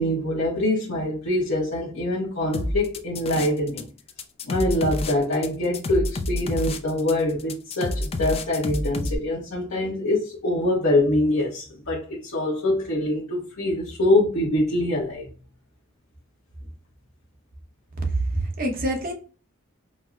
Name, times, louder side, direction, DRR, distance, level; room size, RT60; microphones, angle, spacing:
voice 1, 0.0-3.9 4.4-15.3, left 1 dB, 75° left, 1.1 m, -24 dB
sound 1, 2.5-3.8 4.1-9.2, left 1 dB, 30° left, 0.4 m, -28 dB
voice 2, 18.0-19.1, right 2 dB, 45° right, 0.9 m, -26 dB
5.2 x 2.1 x 2.4 m
head